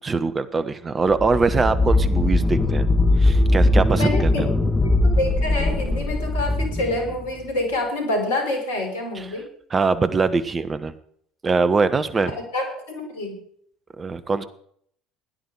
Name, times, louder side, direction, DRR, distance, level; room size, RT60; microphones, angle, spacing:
voice 1, 0.0-2.9 3.2-4.5 9.1-9.4 9.7-10.9 11.4-12.3 14.0-14.4, right 4 dB, 30° right, 12 dB, 1.4 m, -22 dB
sound 1, 1.1-7.5, left 2 dB, 15° left, 2.7 m, -20 dB
voice 2, 3.9-4.4 5.2-9.5 12.3-13.4, left 2 dB, 75° left, 3 dB, 4.4 m, -27 dB
17.0 x 10.5 x 4.9 m, 0.63 s
figure-of-eight pair, 60°, 0 cm